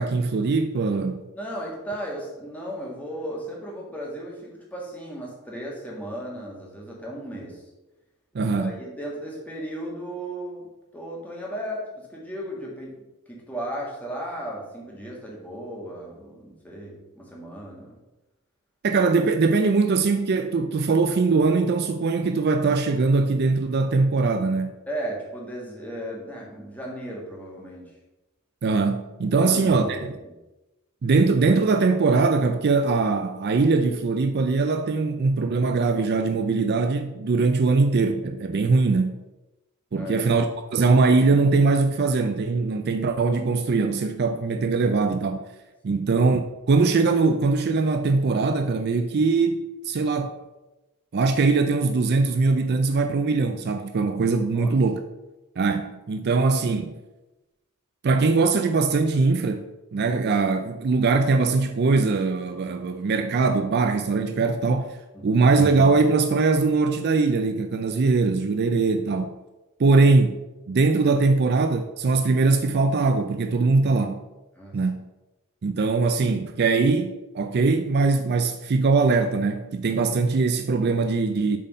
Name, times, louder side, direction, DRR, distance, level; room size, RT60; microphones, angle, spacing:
voice 1, 0.0-1.3 8.3-8.8 18.8-24.8 28.6-30.1 31.0-39.2 39.9-40.5 40.7-45.5 45.8-46.4 46.7-50.4 51.1-55.0 55.6-56.9 58.0-59.7 59.9-65.0 65.2-69.3 69.8-70.4 70.7-74.2 74.7-75.0 75.6-81.6, right 4 dB, 50° right, 0.4 m, -21 dB
voice 2, 1.3-7.6 8.4-18.0 24.9-27.9 29.4-30.3 39.9-40.3 45.9-46.1 54.5-54.7 65.1-65.5 74.6-74.8, right 1 dB, 5° left, 1.8 m, -35 dB
7.4 x 4.1 x 5.4 m
head